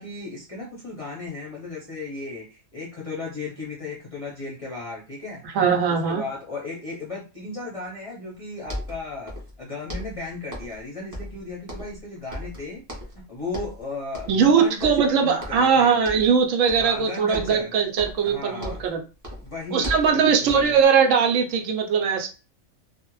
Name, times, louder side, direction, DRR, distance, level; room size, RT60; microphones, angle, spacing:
voice 1, 0.0-5.4 6.1-9.3 9.6-12.8 13.3-16.0 16.8-17.7 18.2-18.8 19.4-20.8, left 3 dB, 40° left, -4 dB, 0.5 m, -35 dB
voice 2, 5.5-6.2 14.3-19.0 19.7-22.3, right 6 dB, 80° right, 4 dB, 0.9 m, -20 dB
sound 1, 8.3-8.4 8.6-9.6 9.9-10.8 11.1-12.0 12.3-13.2 13.5-13.8 14.1-14.5 14.8-15.7 16.0-16.4 16.7-17.0 17.3-19.0 19.2-20.8, left 1 dB, 20° right, 0.6 m, -37 dB
2.4 x 2.0 x 3.0 m, 0.33 s
omnidirectional pair, 1.3 m